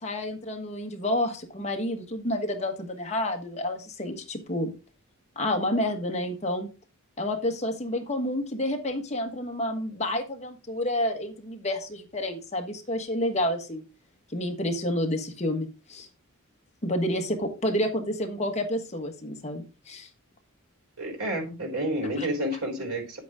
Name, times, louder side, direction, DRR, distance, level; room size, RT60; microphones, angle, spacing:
voice 1, 0.0-4.7 5.3-6.7 7.2-13.8 14.3-16.1 16.8-20.1 22.2-22.3, left 1 dB, 30° left, 3 dB, 1.5 m, -29 dB
voice 2, 21.0-23.2, right 1 dB, 85° right, 2 dB, 4.0 m, -30 dB
9.5 x 8.3 x 3.7 m, 0.32 s
head